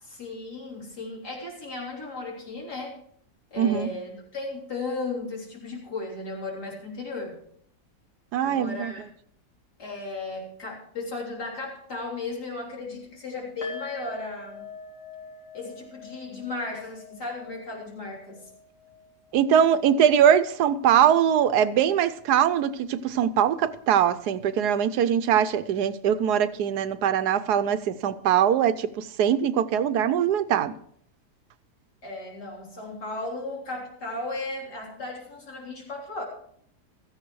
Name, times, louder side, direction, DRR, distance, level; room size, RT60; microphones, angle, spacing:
voice 1, 0.0-3.0 3.5-7.4 8.4-9.0 9.8-14.6 15.5-18.5 32.0-36.3, left 3 dB, 85° left, 4.0 m, -35 dB
voice 2, 3.6-3.9 8.3-8.9 19.3-30.7, right 9 dB, 80° right, 1.2 m, -22 dB
sound 1, 13.6-20.8 21.1-21.3 21.6-21.7, left 4 dB, 50° left, 2.9 m, -45 dB
16.0 x 14.0 x 3.1 m
omnidirectional pair, 1.7 m